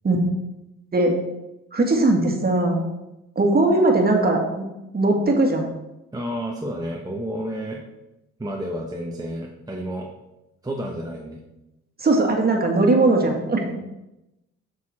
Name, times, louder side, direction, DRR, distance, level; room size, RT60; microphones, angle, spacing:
voice 1, 1.7-2.8 3.4-4.7 4.9-5.7 12.0-13.8, right 2 dB, 30° right, 2 dB, 1.8 m, -19 dB
voice 2, 6.1-7.8 8.4-10.1 10.6-11.4, equal, 10° right, -1 dB, 1.0 m, -30 dB
7.1 x 6.5 x 4.2 m, 0.93 s
cardioid pair, 90°, 30 cm